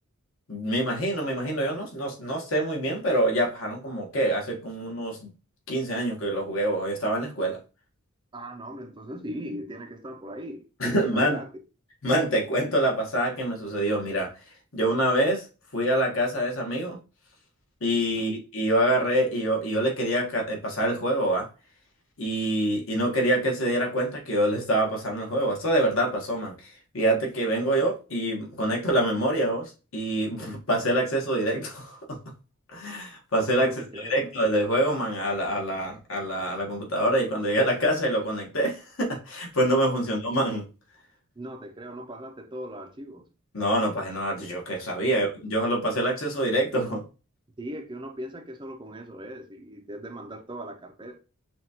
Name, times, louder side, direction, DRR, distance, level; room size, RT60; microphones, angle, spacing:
voice 1, 0.5-5.3 5.7-7.6 10.8-11.4 12.0-14.3 14.7-15.5 15.7-17.0 17.8-21.5 22.2-32.2 32.7-40.6 43.5-47.0, right 1 dB, 60° left, 1.2 m, -26 dB
voice 2, 8.3-11.5 33.6-34.2 41.4-43.3 45.0-45.1 47.6-51.2, equal, 20° right, 0.5 m, -39 dB
5.9 x 2.4 x 2.8 m
head